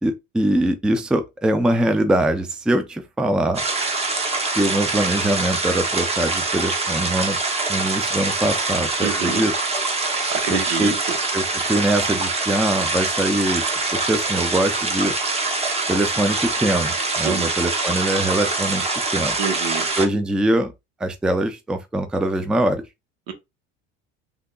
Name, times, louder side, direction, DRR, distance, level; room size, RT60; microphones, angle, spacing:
voice 1, 0.0-3.6 4.5-7.4 7.7-9.5 10.5-10.9 11.3-13.7 13.9-15.1 15.9-19.4 19.9-20.7 21.0-22.8, right 1 dB, 5° right, 0.4 m, -22 dB
sound 1, 3.5-20.0, right 3 dB, 20° right, 0.8 m, -24 dB
voice 2, 9.0-9.4 10.1-11.2 17.2-17.5 19.4-19.9 23.3-23.4, right 6 dB, 80° right, 1.0 m, -27 dB
3.4 x 2.8 x 2.3 m
supercardioid pair, 95°, 31 cm